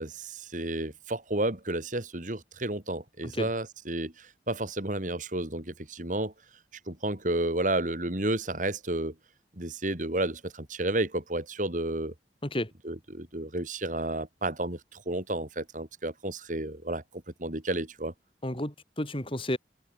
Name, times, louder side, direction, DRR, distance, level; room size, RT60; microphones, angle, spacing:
voice 1, 0.0-6.3 6.9-9.1 9.6-12.1 12.8-17.0 17.4-18.1, right 1 dB, 45° right, 2.9 m, -31 dB
voice 2, 18.4-19.6, left 1 dB, 30° left, 4.3 m, -31 dB
head